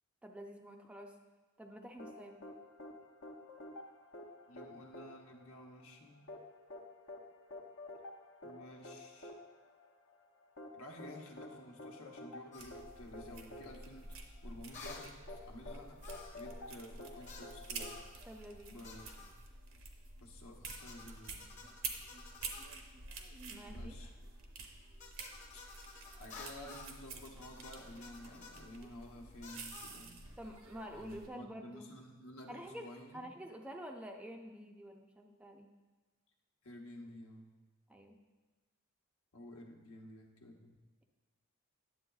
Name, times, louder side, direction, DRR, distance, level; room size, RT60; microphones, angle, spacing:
voice 1, 0.2-1.1 1.6-2.4 18.2-18.8 23.5-24.0 30.4-31.9 32.5-32.9 33.1-35.7 37.9-38.2, equal, 5° right, 3 dB, 0.4 m, -48 dB
sound 1, 2.0-18.9, left 2 dB, 55° left, 0.6 m, -51 dB
voice 2, 4.5-6.2 8.4-9.4 10.7-16.0 16.3-18.0 18.7-19.2 20.2-21.5 23.7-24.1 25.5-25.6 26.2-30.2 30.9-33.3 36.6-37.5 39.3-40.7, left 1 dB, 80° left, 1 dB, 1.0 m, -52 dB
sound 2, 12.5-12.8 14.7-15.1 16.0-16.5 17.3-17.5 17.8-18.1 18.8-19.3 20.7-22.8 25.0-27.0 27.4-28.7 29.4-30.0, left 4 dB, 35° left, 0.9 m, -53 dB
sound 3, 12.6-31.3, right 3 dB, 70° right, 0.8 m, -49 dB
9.5 x 7.7 x 2.3 m, 1.3 s
head